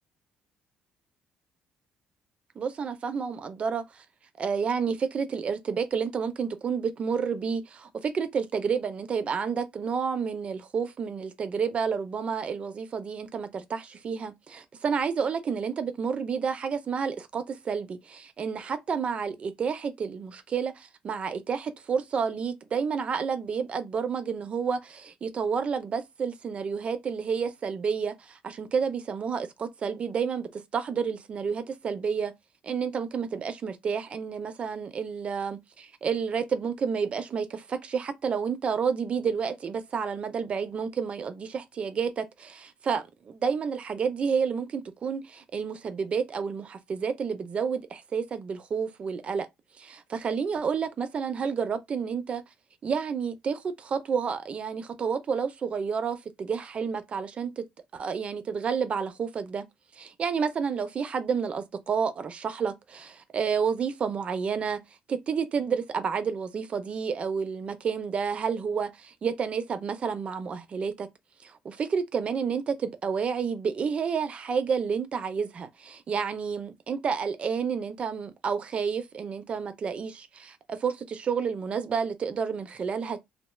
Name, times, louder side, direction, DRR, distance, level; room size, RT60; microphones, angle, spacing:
voice 1, 2.6-4.0 4.4-32.3 32.6-49.5 49.8-52.4 52.8-57.6 57.9-59.6 60.0-64.8 65.1-71.1 71.4-83.2, right 6 dB, 45° right, 0.4 m, -30 dB
2.7 x 2.2 x 3.1 m
cardioid pair, 90°, 3 cm